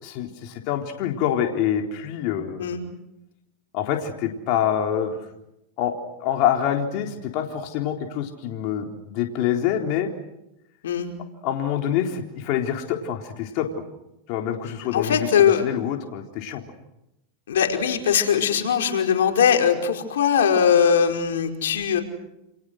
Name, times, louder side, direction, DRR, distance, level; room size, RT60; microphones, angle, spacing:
voice 1, 0.0-2.6 3.7-5.2 5.8-5.9 6.2-10.1 11.4-13.7 14.3-15.3 15.6-16.6, left 10 dB, 55° left, 3 dB, 3.9 m, -26 dB
voice 2, 14.9-15.6 17.5-22.0, left 8 dB, 85° left, 3 dB, 5.0 m, -20 dB
30.0 x 29.0 x 6.5 m, 0.90 s
hypercardioid pair, 115°, 0 cm